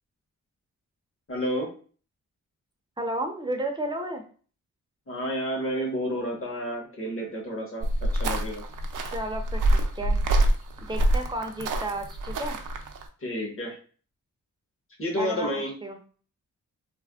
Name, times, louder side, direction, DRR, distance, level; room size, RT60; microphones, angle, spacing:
voice 1, 1.3-1.7 5.1-8.6 13.2-13.8 15.0-15.7, equal, 45° left, -1 dB, 1.2 m, -30 dB
voice 2, 3.0-4.2 9.1-10.2 10.8-12.6 15.2-16.0, right 1 dB, 15° right, 4 dB, 0.6 m, -33 dB
sound 1, 7.8-13.0, right 1 dB, 75° right, 0.5 m, -26 dB
3.3 x 2.1 x 2.3 m, 0.41 s
cardioid pair, 80°, 32 cm